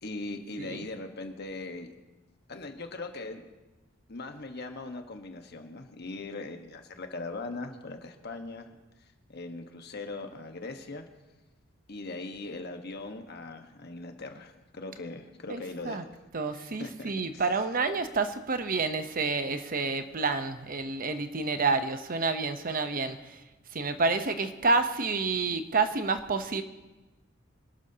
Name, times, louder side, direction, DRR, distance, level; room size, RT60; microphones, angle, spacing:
voice 1, 0.0-1.9 2.5-3.4 4.1-11.0 11.9-16.1 16.5-17.4 23.1-23.2, left 2 dB, 55° left, 5 dB, 1.4 m, -40 dB
voice 2, 15.5-16.0 16.3-23.4 23.7-26.6, right 4 dB, 45° right, 9 dB, 0.9 m, -29 dB
25.5 x 12.0 x 2.9 m, 1.1 s
head